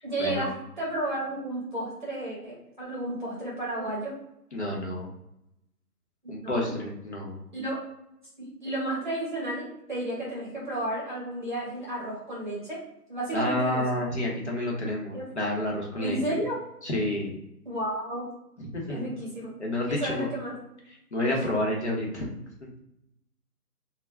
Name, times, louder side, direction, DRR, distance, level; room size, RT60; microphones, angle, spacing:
voice 1, 0.0-4.2 6.4-6.8 7.5-7.8 8.4-12.8 13.1-14.0 15.1-15.2 16.0-16.6 17.6-18.3 18.9-19.5 19.9-20.5 21.3-21.4, right 1 dB, 30° right, -6 dB, 0.8 m, -32 dB
voice 2, 4.5-5.1 6.3-7.4 13.3-16.2 16.8-17.3 18.6-19.0 19.6-20.3 21.1-22.3, left 1 dB, 45° left, -2 dB, 0.7 m, -29 dB
2.3 x 2.0 x 3.2 m, 0.84 s
hypercardioid pair, 170°, 47 cm